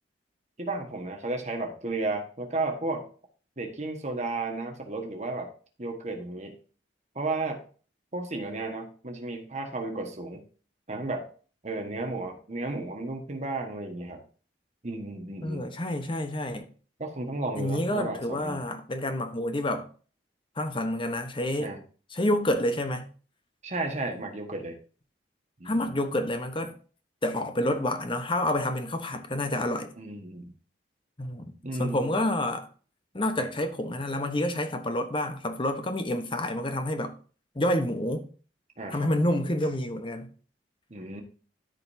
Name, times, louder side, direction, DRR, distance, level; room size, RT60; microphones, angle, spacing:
voice 1, 0.6-3.0 3.6-5.5 5.8-6.5 7.1-7.6 8.1-10.4 10.9-11.3 11.6-14.2 14.8-15.7 17.0-18.6 21.6-21.8 23.6-24.7 25.6-25.9 30.0-30.5 31.6-32.1 38.8-39.0 40.9-41.2, right 2 dB, 40° right, 1.5 m, -33 dB
voice 2, 15.4-16.7 17.5-19.9 20.6-21.7 22.1-23.1 25.6-26.7 27.2-29.9 31.2-31.5 31.8-32.7 33.1-37.1 37.5-38.3 38.9-40.3, left 1 dB, 30° left, 1.0 m, -28 dB
13.0 x 5.2 x 2.8 m
head